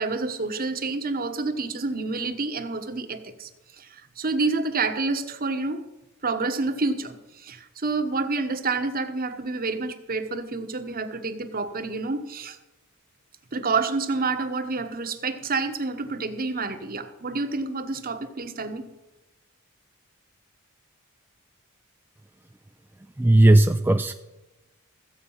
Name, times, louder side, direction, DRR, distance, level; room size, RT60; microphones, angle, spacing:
voice 1, 0.0-5.8 6.2-12.6 13.5-18.9, right 3 dB, 40° right, 8 dB, 1.1 m, -28 dB
voice 2, 23.2-24.1, right 1 dB, 10° right, 5 dB, 0.3 m, -16 dB
15.0 x 8.1 x 5.6 m, 1.0 s
head